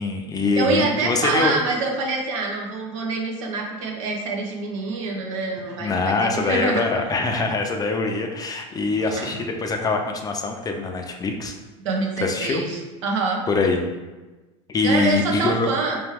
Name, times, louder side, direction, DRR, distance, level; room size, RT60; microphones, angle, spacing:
voice 1, 0.0-1.6 5.8-11.5 12.2-12.6 13.5-13.8 14.7-15.7, left 3 dB, 25° left, 3 dB, 0.5 m, -23 dB
voice 2, 0.5-7.1 9.1-9.3 11.8-13.4 14.8-16.1, right 3 dB, 80° right, 0 dB, 0.8 m, -26 dB
3.4 x 3.0 x 3.5 m, 1.2 s
supercardioid pair, 110°, 16 cm